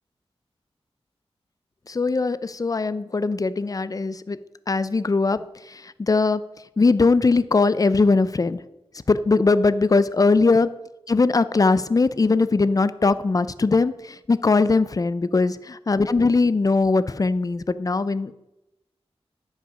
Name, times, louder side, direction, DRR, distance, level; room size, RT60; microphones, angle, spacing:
voice 1, 1.9-4.4 4.7-5.4 5.7-6.4 6.8-8.6 9.1-10.7 11.1-18.3, left 3 dB, 35° left, 15 dB, 0.4 m, -20 dB
10.0 x 5.6 x 5.5 m, 0.94 s
wide cardioid pair, 90°, 11 cm